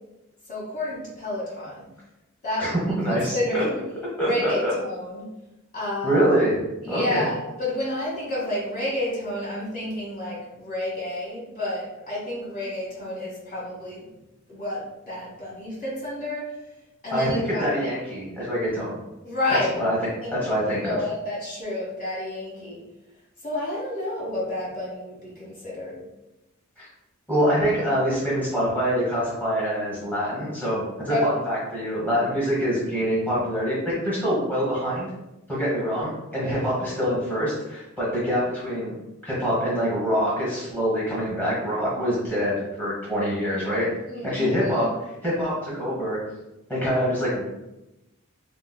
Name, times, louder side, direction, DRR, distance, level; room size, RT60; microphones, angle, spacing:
voice 1, 0.5-1.9 2.4-3.7 4.2-5.3 5.7-6.3 6.8-14.1 14.5-16.5 17.0-17.9 19.2-19.7 20.2-20.4 20.8-22.8 23.4-26.0 31.1-31.3 44.1-44.9, left 1 dB, 40° left, -6 dB, 1.3 m, -30 dB
voice 2, 2.6-3.6 4.2-4.7 6.0-6.6 6.9-7.3 17.1-18.9 19.8-20.0 20.4-21.0 26.8-26.9 27.3-35.1 35.5-38.9 39.2-43.9 44.2-46.2 46.7-47.5, equal, 10° left, -8 dB, 1.1 m, -25 dB
3.2 x 3.0 x 2.2 m, 0.96 s
head